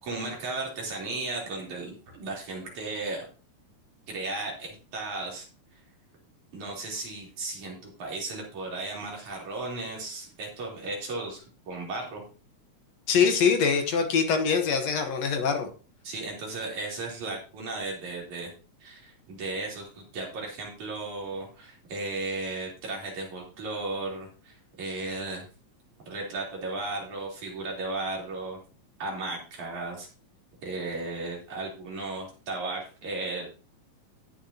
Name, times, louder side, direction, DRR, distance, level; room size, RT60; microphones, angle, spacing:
voice 1, 0.0-3.3 4.1-5.5 6.5-12.2 16.0-18.5 18.8-25.5 26.1-28.6 29.0-30.1 30.6-33.5, right 2 dB, 70° right, -2 dB, 4.9 m, -35 dB
voice 2, 13.1-15.7, left 6 dB, 65° left, 6 dB, 2.2 m, -23 dB
18.0 x 6.9 x 2.8 m, 0.36 s
omnidirectional pair, 3.5 m